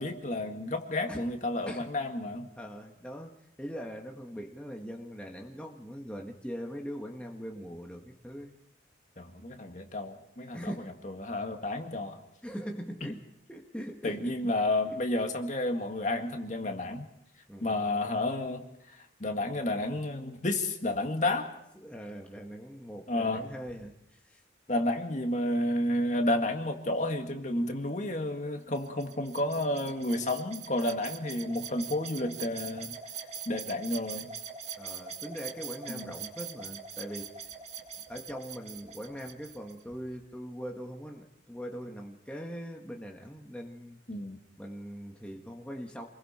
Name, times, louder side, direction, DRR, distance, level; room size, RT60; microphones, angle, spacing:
voice 1, 0.0-2.5 9.2-10.7 11.0-12.2 13.0-13.1 14.0-17.1 17.6-21.5 23.1-23.4 24.7-33.0 33.5-34.3 35.9-36.1 44.1-44.4, left 1 dB, 40° left, 4 dB, 2.0 m, -31 dB
voice 2, 2.6-8.6 10.5-10.9 12.4-13.2 13.5-14.3 14.8-15.0 17.5-17.7 21.7-24.4 34.8-37.5 38.1-44.0 44.6-46.0, equal, 5° left, 0 dB, 1.7 m, -41 dB
sound 1, 28.7-39.8, right 6 dB, 35° right, 2.1 m, -43 dB
28.0 x 21.5 x 4.4 m, 0.80 s
head